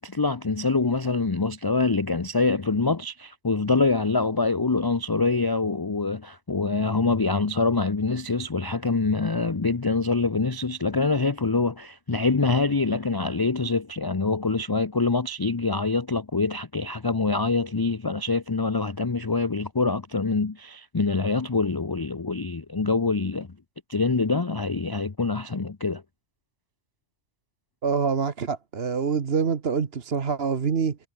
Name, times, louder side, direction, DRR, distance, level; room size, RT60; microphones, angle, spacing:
voice 1, 0.0-23.5 23.9-26.0, left 3 dB, 25° left, 0.6 m, -25 dB
voice 2, 27.8-31.0, right 6 dB, 55° right, 1.5 m, -25 dB
omnidirectional pair, 1.3 m